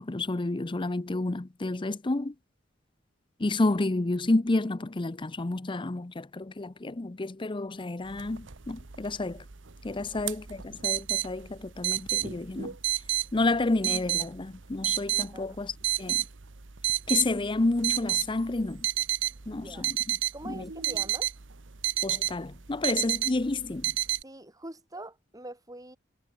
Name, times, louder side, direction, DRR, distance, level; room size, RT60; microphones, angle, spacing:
voice 1, 0.0-2.3 3.4-9.4 9.8-12.8 13.3-16.2 17.1-18.9 19.5-20.2 20.4-20.7 22.0-24.0, left 2 dB, 25° left, 0.6 m, -30 dB
sound 1, 8.1-24.2, right 15 dB, 85° right, 1.2 m, -32 dB
voice 2, 19.5-19.9 20.3-21.3 24.2-26.0, right 1 dB, 20° right, 6.5 m, -44 dB
head